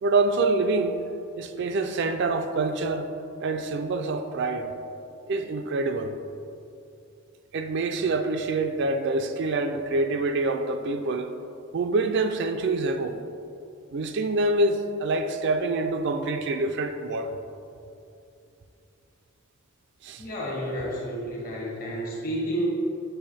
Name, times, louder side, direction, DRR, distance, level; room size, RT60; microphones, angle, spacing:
voice 1, 0.0-1.0 1.4-3.1 3.4-4.7 5.3-6.2 7.5-11.3 11.7-13.2 13.9-17.4 20.0-20.3, right 2 dB, 55° right, 0.4 m, -26 dB
voice 2, 20.2-22.7, equal, 45° left, 1.4 m, -31 dB
7.9 x 3.4 x 4.1 m
head